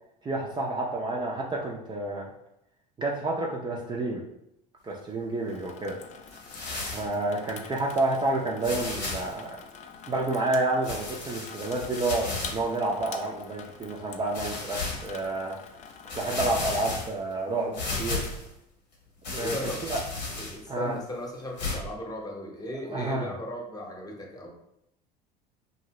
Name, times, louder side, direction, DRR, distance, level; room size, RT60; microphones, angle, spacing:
voice 1, 0.2-2.3 3.0-4.2 4.8-6.0 6.7-9.6 10.1-15.6 16.1-17.7 18.0-18.2 19.3-20.0 20.7-20.9 22.9-23.3, right 2 dB, 20° right, -2 dB, 0.5 m, -29 dB
Water tap faucet / Sink (filling or washing), 5.5-16.6, left 6 dB, 35° left, 0.4 m, -46 dB
sound 1, 6.3-7.1 7.9-8.0 8.6-9.3 10.8-12.6 13.2-13.3 14.3-15.1 15.7-15.8 16.1-17.3 17.7-18.5 19.2-20.7 21.6-21.7, left 3 dB, 85° left, 1.0 m, -34 dB
voice 2, 19.4-19.8 20.4-24.5, left 1 dB, 20° left, 0 dB, 0.9 m, -36 dB
2.7 x 2.6 x 3.0 m, 0.80 s
hypercardioid pair, 70°, 21 cm